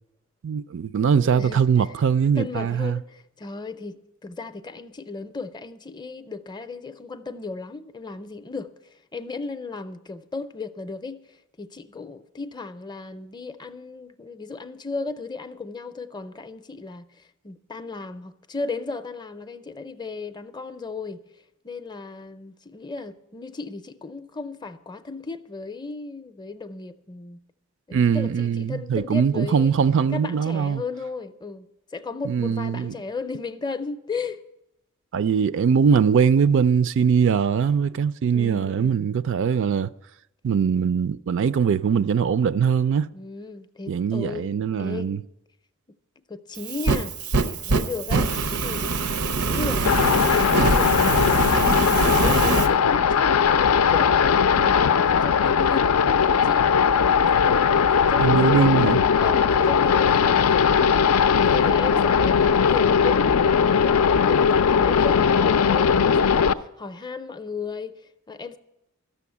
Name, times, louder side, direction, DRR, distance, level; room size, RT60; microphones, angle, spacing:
voice 1, 0.4-3.0 27.9-30.8 32.2-32.9 35.1-39.9 40.4-43.1 43.9-45.2 58.2-59.0, right 6 dB, 60° right, 0.3 m, -21 dB
voice 2, 1.0-1.9 2.3-11.3 11.6-21.2 21.6-27.4 27.9-29.8 30.1-34.4 38.3-39.0 43.1-45.1 45.9-46.0 46.3-47.2 47.4-49.0 49.3-51.2 51.5-54.1 54.5-56.6 57.3-58.9 59.2-61.0 61.4-67.9 68.3-68.6, left 4 dB, 20° left, 0.5 m, -35 dB
Fire, 46.6-52.7, right 3 dB, 90° right, 0.7 m, -23 dB
sound 1, 49.9-66.5, left 6 dB, 85° left, 0.4 m, -19 dB
13.0 x 6.9 x 8.4 m
head